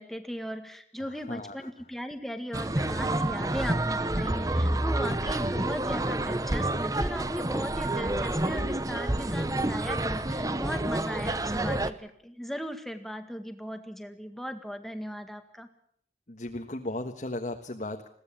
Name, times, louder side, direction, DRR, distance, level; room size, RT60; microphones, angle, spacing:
voice 1, 0.0-15.7, equal, ahead, 7 dB, 1.8 m, -38 dB
voice 2, 1.0-1.7 16.3-18.1, left 1 dB, 40° left, 4 dB, 1.5 m, -36 dB
sound 1, 2.5-11.9, right 1 dB, 20° right, 0.9 m, -28 dB
21.5 x 16.5 x 8.7 m, 0.66 s
head